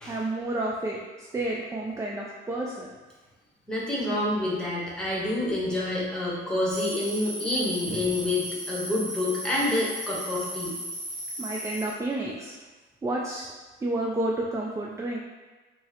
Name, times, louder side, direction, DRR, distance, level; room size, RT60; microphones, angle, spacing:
voice 1, 0.0-2.9 11.4-12.5 13.0-13.5 13.8-15.2, right 2 dB, 15° right, -2 dB, 0.3 m, -30 dB
voice 2, 3.7-10.8, left 1 dB, 5° left, -7 dB, 1.0 m, -28 dB
sound 1, 6.7-11.9, right 1 dB, 40° right, 0.8 m, -36 dB
3.7 x 2.1 x 2.8 m, 1.2 s
cardioid pair, 90°, 20 cm